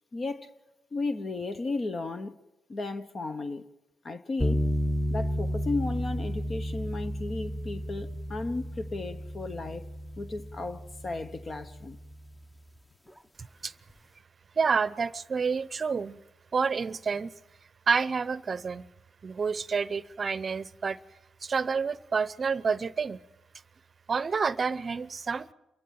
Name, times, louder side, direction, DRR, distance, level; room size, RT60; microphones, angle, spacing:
voice 1, 0.1-0.5 0.9-2.4 2.7-3.6 4.0-4.6 5.1-9.9 10.2-12.0, left 3 dB, 45° left, 1.1 m, -34 dB
sound 1, 4.4-12.6, equal, 10° left, 1.0 m, -33 dB
voice 2, 14.6-16.2 16.5-17.3 17.9-18.8 19.2-21.0 21.4-23.2 24.1-25.5, right 5 dB, 45° right, 0.7 m, -29 dB
28.5 x 15.5 x 7.7 m
supercardioid pair, 60°, 0 cm